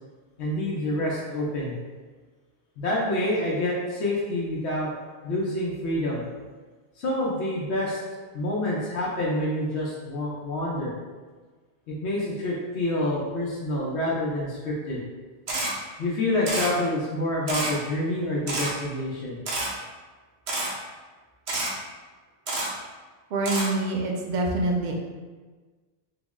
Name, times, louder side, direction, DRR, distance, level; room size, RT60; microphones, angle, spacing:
voice 1, 0.4-1.7 2.8-4.9 5.2-6.2 7.0-8.0 8.3-10.9 11.9-15.0 16.0-19.4, left 1 dB, 90° left, -6 dB, 0.9 m, -27 dB
Camera, 15.5-15.7 16.5-16.7 17.5-17.7 18.5-18.7 19.5-19.7 20.5-20.7 21.5-21.7 22.5-22.7 23.5-23.7, right 2 dB, 75° right, 1.0 m, -28 dB
voice 2, 23.3-24.9, right 2 dB, 55° right, 0 dB, 0.6 m, -26 dB
3.7 x 2.0 x 3.5 m, 1.4 s
omnidirectional pair, 1.1 m